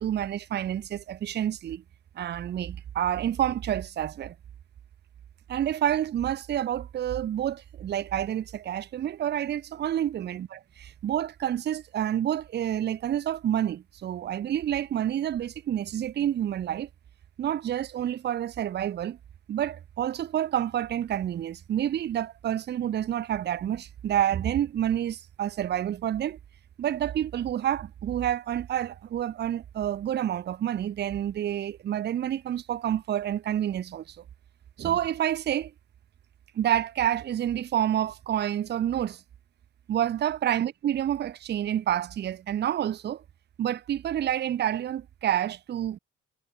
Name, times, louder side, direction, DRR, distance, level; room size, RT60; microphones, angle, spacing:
voice 1, 0.0-1.8 2.2-4.3 5.5-16.9 17.4-19.2 19.5-26.4 26.8-34.2 34.8-35.7 36.5-39.2 39.9-43.2 43.6-46.0, right 11 dB, 35° right, 0.4 m, -28 dB
cardioid pair, 90°, 30 cm